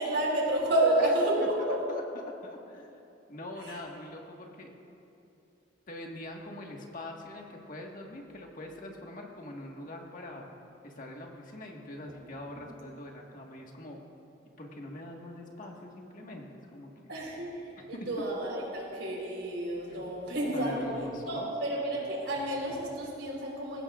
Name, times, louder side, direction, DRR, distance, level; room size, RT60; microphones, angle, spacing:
voice 1, 0.0-1.8 3.6-3.8 17.1-17.6 17.9-20.9 21.3-23.8, right 1 dB, 80° right, -3 dB, 4.0 m, -30 dB
voice 2, 1.4-2.9 3.3-4.7 5.9-10.4 10.8-14.0 14.6-17.1 19.9-20.0 20.5-21.5, left 1 dB, 50° left, 0 dB, 1.6 m, -43 dB
20.5 x 16.5 x 2.5 m, 2.7 s
head